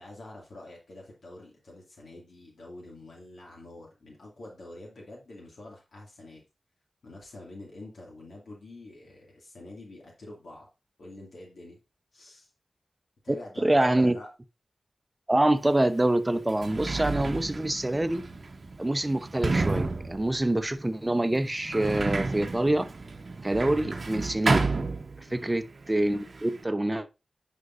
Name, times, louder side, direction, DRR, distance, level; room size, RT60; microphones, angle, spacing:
voice 1, 0.0-6.4 7.0-10.7 11.0-11.8 12.1-12.5 13.2-14.3 25.3-25.6, left 2 dB, 85° left, 2.3 m, -46 dB
voice 2, 13.6-14.2 15.3-18.2 18.8-22.9 23.4-24.7 25.3-27.1, right 1 dB, 20° right, 0.7 m, -26 dB
Sliding door, 15.7-15.8 16.4-25.6 25.8-26.6, right 3 dB, 60° right, 0.9 m, -31 dB
9.7 x 5.3 x 2.5 m
wide cardioid pair, 75°, 0 cm